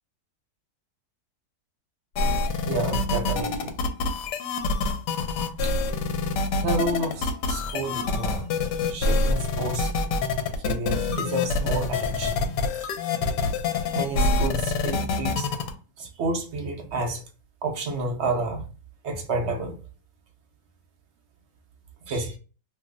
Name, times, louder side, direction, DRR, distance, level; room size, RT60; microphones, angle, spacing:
sound 1, 2.2-15.7, left 3 dB, 75° left, 1.1 m, -26 dB
voice 1, 2.6-3.7 5.6-5.7 6.6-8.5 8.9-9.9 10.6-12.5 13.9-15.5 16.0-17.2 17.6-18.7 19.0-19.8 22.1-22.4, right 2 dB, 60° right, 0.7 m, -30 dB
2.9 x 2.0 x 3.6 m
omnidirectional pair, 1.9 m